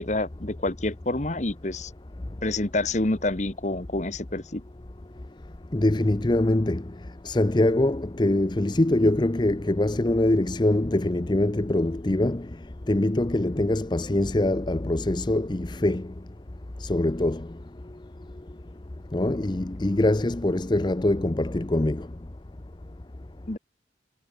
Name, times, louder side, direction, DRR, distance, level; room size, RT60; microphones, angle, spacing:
voice 1, 0.0-1.9 2.4-4.6 23.5-23.6, left 2 dB, 40° left, 1.3 m, -28 dB
voice 2, 5.7-6.8 7.2-12.5 12.9-16.0 16.8-17.4 19.1-22.0, left 1 dB, 25° left, 0.6 m, -23 dB
head